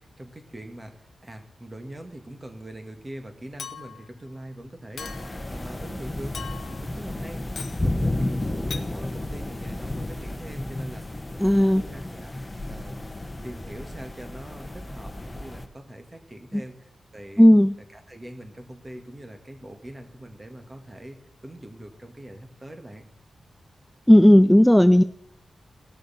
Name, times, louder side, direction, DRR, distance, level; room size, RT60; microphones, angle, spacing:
voice 1, 0.0-12.3 12.7-13.0 13.4-17.4 17.9-23.0, right 1 dB, 25° right, 5 dB, 1.9 m, -42 dB
Chink clink, 3.6-4.1 5.0-5.4 6.3-6.8 7.5-7.8 8.7-8.9, left 6 dB, 70° left, 0.8 m, -38 dB
sound 1, 5.0-15.7, left 1 dB, 25° left, 1.1 m, -32 dB
voice 2, 11.4-11.8 17.4-17.7 24.1-25.0, left 1 dB, 5° left, 12 dB, 0.3 m, -14 dB
17.5 x 6.4 x 4.4 m, 0.74 s
cardioid pair, 50°, 0 cm